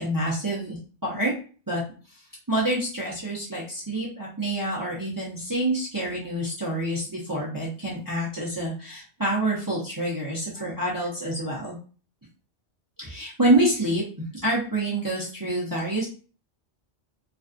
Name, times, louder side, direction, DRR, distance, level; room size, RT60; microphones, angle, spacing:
voice 1, 0.0-1.3 1.7-1.8 2.5-11.7 13.0-14.0 14.4-16.1, right 1 dB, 25° right, -6 dB, 0.6 m, -27 dB
2.5 x 2.3 x 2.4 m, 0.38 s
omnidirectional pair, 1.1 m